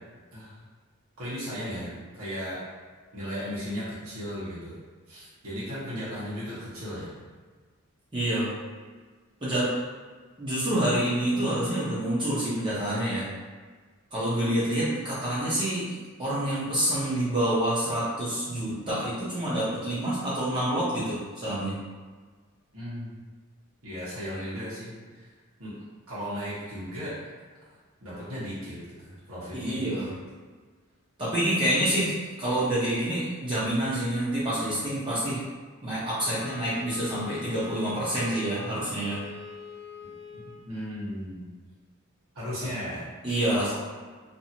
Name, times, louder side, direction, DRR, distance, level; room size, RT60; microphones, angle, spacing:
voice 1, 1.2-2.6 3.1-4.7 5.1-7.1 22.7-23.2 23.8-25.3 25.6-25.7 26.1-27.1 28.0-30.1 40.3-41.4 42.3-43.1 43.5-43.8, equal, 75° right, -11 dB, 1.2 m, -36 dB
voice 2, 8.1-8.5 9.4-9.7 10.4-13.3 14.1-15.9 16.2-21.7 29.5-30.1 31.2-35.4 35.8-39.2 43.2-43.8, right 1 dB, 20° right, -10 dB, 0.7 m, -27 dB
Wind instrument woodwind instrument, 36.2-40.7, left 3 dB, 45° left, 0.8 m, -42 dB
2.8 x 2.6 x 2.8 m, 1.5 s
head